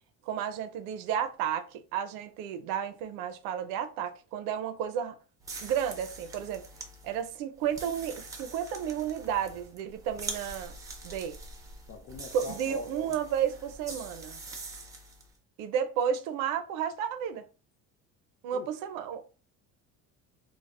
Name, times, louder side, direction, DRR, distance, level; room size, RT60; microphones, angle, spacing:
voice 1, 0.3-5.2 5.6-6.6 7.0-10.8 11.0-11.4 12.3-14.4 15.6-17.4 18.4-19.2, right 8 dB, 70° right, 0.5 m, -32 dB
sound 1, 5.4-15.3, right 3 dB, 10° right, 0.3 m, -44 dB
voice 2, 11.9-13.2 18.5-18.7, left 4 dB, 45° left, 0.6 m, -42 dB
2.4 x 2.0 x 3.5 m
cardioid pair, 160°, 34 cm